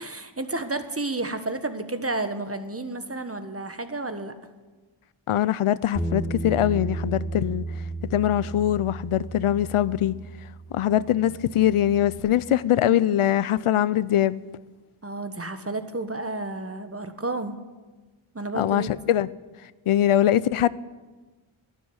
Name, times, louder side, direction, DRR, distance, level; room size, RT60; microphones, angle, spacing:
voice 1, 0.0-4.3 15.0-17.6 18.3-18.9, right 2 dB, 25° right, 1.4 m, -31 dB
voice 2, 5.3-7.7 8.0-10.2 10.7-14.4 18.5-19.3 19.9-20.7, left 11 dB, 80° left, 0.6 m, -22 dB
Bass guitar, 5.9-12.2, right 2 dB, ahead, 4.2 m, -34 dB
12.0 x 10.0 x 9.7 m
cardioid pair, 50°, 50 cm